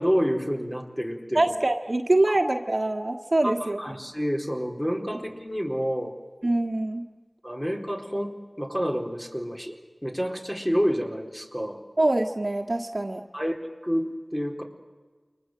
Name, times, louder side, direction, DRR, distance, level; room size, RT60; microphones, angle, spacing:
voice 1, 0.0-1.4 3.4-6.1 7.4-9.8 10.0-11.8 13.3-13.6 13.8-14.6, equal, 10° left, 1 dB, 4.1 m, -28 dB
voice 2, 1.3-3.8 6.4-7.0 12.0-13.2, right 2 dB, 55° right, 2 dB, 1.7 m, -24 dB
29.5 x 24.0 x 7.9 m, 1.4 s
wide cardioid pair, 50°, 0 cm